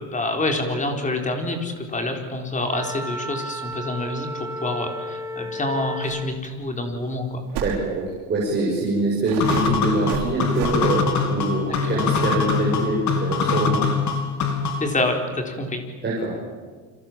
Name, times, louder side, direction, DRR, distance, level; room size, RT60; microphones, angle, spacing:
voice 1, 0.0-7.4 11.8-12.0 14.8-15.8, left 2 dB, 20° left, 4 dB, 4.2 m, -27 dB
Wind instrument woodwind instrument, 2.7-6.4, equal, 5° right, 1.2 m, -33 dB
sound 1, 6.0-6.2 6.4-6.5 7.5-7.8 8.6-8.7 9.3-10.8, right 9 dB, 80° right, 5.7 m, -31 dB
voice 2, 7.6-8.0 8.3-13.8 16.0-16.4, right 2 dB, 25° right, -4 dB, 6.8 m, -24 dB
sound 2, 9.4-15.0, left 5 dB, 45° left, 3.4 m, -23 dB
29.0 x 26.5 x 7.6 m, 1.5 s
cardioid pair, 160°, 40 cm